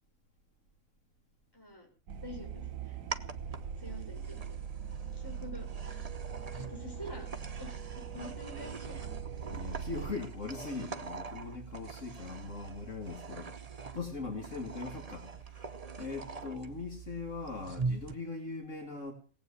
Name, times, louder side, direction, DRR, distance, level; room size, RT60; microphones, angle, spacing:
voice 1, 1.5-1.9 2.2-3.0 3.8-4.6 5.1-6.0 6.5-7.3 7.6-8.9, left 1 dB, 15° left, 0 dB, 5.8 m, -47 dB
sound 1, 2.1-18.1, right 5 dB, 30° right, 1.0 m, -43 dB
sound 2, 2.1-10.1, right 7 dB, 70° right, 1.3 m, -42 dB
voice 2, 9.5-13.5 13.9-15.6 16.0-19.1, left 4 dB, 60° left, 2 dB, 2.7 m, -40 dB
18.5 x 8.8 x 8.4 m, 0.40 s
omnidirectional pair, 1.4 m